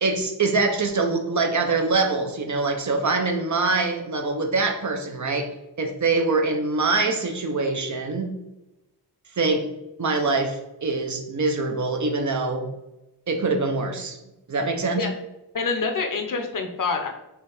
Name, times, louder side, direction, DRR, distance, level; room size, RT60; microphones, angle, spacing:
voice 1, 0.0-5.5 5.8-8.3 9.3-9.7 10.0-12.7 13.3-14.2 14.5-15.0, right 3 dB, 45° right, 4 dB, 0.6 m, -24 dB
voice 2, 15.5-17.1, left 4 dB, 50° left, 4 dB, 0.7 m, -26 dB
4.2 x 2.8 x 3.9 m, 0.94 s
wide cardioid pair, 90°, 43 cm